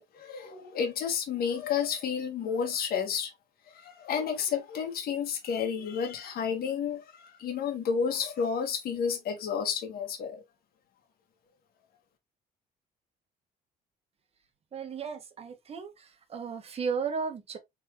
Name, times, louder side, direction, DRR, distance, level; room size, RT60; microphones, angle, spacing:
voice 1, 0.0-3.3 3.7-10.4, left 7 dB, 65° left, 1.6 m, -31 dB
voice 2, 14.7-15.9 16.3-17.6, right 5 dB, 35° right, 1.3 m, -34 dB
4.1 x 3.9 x 3.0 m
cardioid pair, 110°, 17 cm